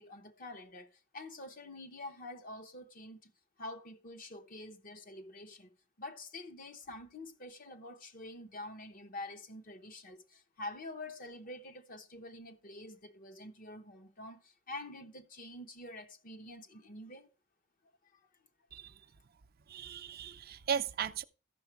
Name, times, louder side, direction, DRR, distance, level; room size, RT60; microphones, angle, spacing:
voice 1, 0.0-3.3 3.6-5.7 6.0-17.3 18.1-18.2, left 2 dB, 45° left, 1.1 m, -47 dB
voice 2, 19.7-21.2, right 7 dB, 50° right, 0.5 m, -36 dB
13.5 x 5.9 x 4.7 m
head